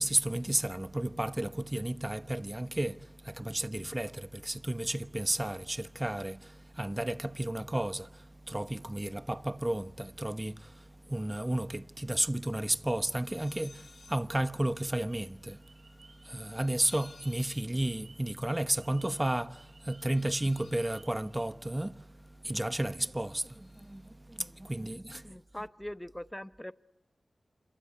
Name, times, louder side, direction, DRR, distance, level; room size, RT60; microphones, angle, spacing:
voice 1, 0.0-25.3, right 1 dB, 20° right, 0.9 m, -33 dB
sound 1, 13.3-14.3 14.6-22.8 23.0-24.1, left 4 dB, 70° left, 1.1 m, -59 dB
sound 2, 15.0-17.5 17.8-21.5, right 4 dB, 90° right, 5.4 m, -61 dB
voice 2, 25.2-26.7, left 1 dB, 15° left, 0.9 m, -41 dB
27.0 x 23.0 x 9.4 m
cardioid pair, 45°, 0 cm